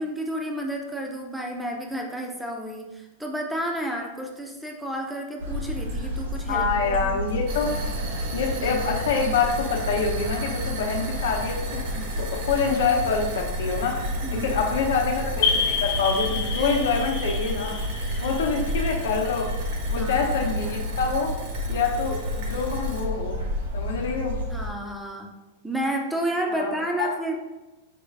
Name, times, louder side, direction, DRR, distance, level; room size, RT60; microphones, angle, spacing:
voice 1, 0.0-7.2 14.2-14.5 16.6-16.8 18.1-18.3 20.0-20.3 24.5-25.3 25.6-27.4, right 1 dB, ahead, 1 dB, 0.4 m, -31 dB
sound 1, 5.4-24.7, left 1 dB, 85° right, 1.0 m, -30 dB
voice 2, 6.5-7.7 8.3-11.8 12.2-14.0 14.3-17.8 18.2-19.5 19.9-21.3 21.7-23.4 23.7-24.4 26.5-26.7 27.0-27.1, left 5 dB, 70° left, 1 dB, 0.7 m, -26 dB
sound 2, 7.5-23.0, right 2 dB, 40° right, 0.6 m, -37 dB
sound 3, 15.4-19.9, left 6 dB, 45° left, 0.9 m, -29 dB
5.1 x 2.4 x 3.3 m, 1.1 s
supercardioid pair, 180°, 0 cm